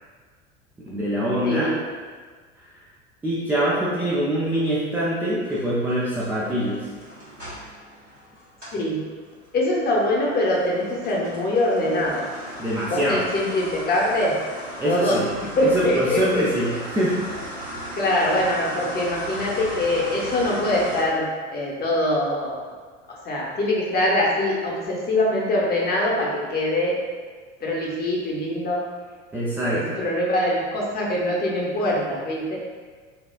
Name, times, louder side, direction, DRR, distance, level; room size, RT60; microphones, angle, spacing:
voice 1, 0.9-1.7 3.2-6.8 12.6-13.2 14.8-15.3 15.6-17.2 29.3-30.0, right 1 dB, 5° right, -8 dB, 0.3 m, -24 dB
voice 2, 1.4-1.7 8.7-9.0 9.5-12.3 12.9-14.3 14.8-16.4 18.0-22.6 23.2-27.0 27.6-28.8 29.7-32.6, left 1 dB, 25° left, -4 dB, 0.8 m, -23 dB
sound 1, 5.4-8.8 9.2-21.0, equal, 85° right, 1.4 m, -37 dB
4.2 x 2.3 x 2.3 m, 1.5 s
figure-of-eight pair, 75°, 37 cm